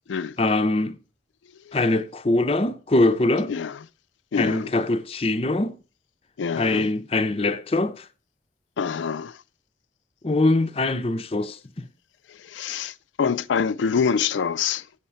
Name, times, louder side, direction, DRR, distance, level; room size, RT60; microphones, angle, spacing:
voice 1, 0.4-0.9 1.7-3.5 4.3-5.8 6.5-8.1 10.2-11.9, left 2 dB, 30° left, 0.5 m, -23 dB
voice 2, 3.5-3.8 4.3-4.7 6.4-6.9 8.8-9.4 12.3-14.9, left 6 dB, 85° left, 0.4 m, -26 dB
7.9 x 5.6 x 6.3 m
head